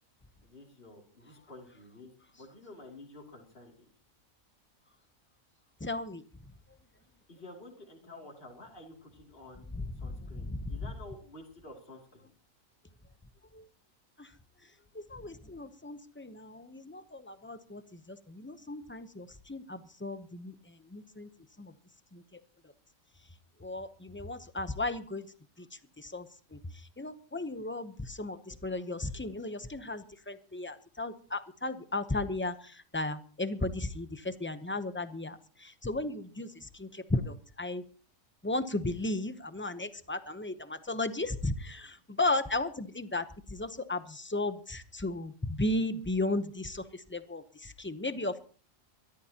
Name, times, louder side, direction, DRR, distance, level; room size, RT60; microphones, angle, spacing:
voice 1, 0.4-3.9 7.3-9.7 10.0-12.3, left 2 dB, 45° left, 1 dB, 2.9 m, -50 dB
voice 2, 5.8-6.2 10.3-10.6 13.5-13.7 14.2-14.3 14.9-20.5 20.9-21.3 21.6-21.7 22.1-22.2 23.6-25.3 25.6-25.7 26.0-26.6 27.0-37.8 38.4-43.2 43.5-48.4, left 2 dB, 10° left, 11 dB, 0.6 m, -35 dB
23.0 x 13.5 x 2.9 m, 0.39 s
omnidirectional pair, 1.4 m